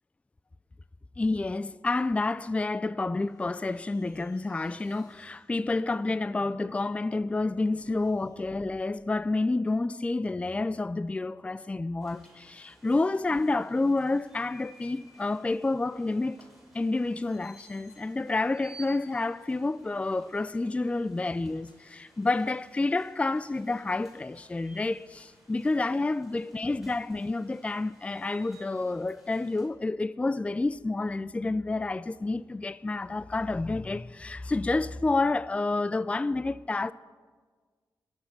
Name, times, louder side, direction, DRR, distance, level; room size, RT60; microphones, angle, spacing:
voice 1, 1.2-16.4 16.7-36.9, left 2 dB, 15° left, 0.3 m, -29 dB
sound 1, 3.2-9.2 10.1-10.7, left 1 dB, 60° left, 4.1 m, -58 dB
sound 2, 12.0-29.7, right 1 dB, 5° right, 5.3 m, -56 dB
21.5 x 8.1 x 6.6 m
cardioid pair, 85°, 7 cm